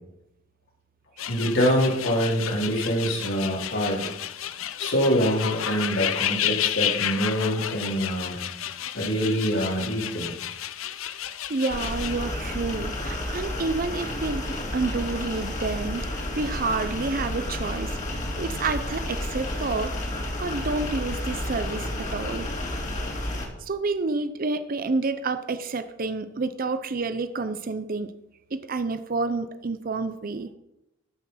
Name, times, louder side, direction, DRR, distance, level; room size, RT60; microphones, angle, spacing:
sound 1, 1.2-12.1, left 11 dB, 85° left, 0.6 m, -31 dB
voice 1, 1.3-4.1 4.8-8.4 8.9-10.3, equal, 70° left, -3 dB, 3.5 m, -25 dB
voice 2, 11.5-19.9 20.4-22.5 23.6-28.1 28.5-30.5, right 3 dB, 45° right, 11 dB, 0.6 m, -29 dB
sound 2, 11.7-23.5, left 1 dB, 40° left, 2.3 m, -31 dB
13.5 x 5.8 x 5.7 m, 0.89 s
head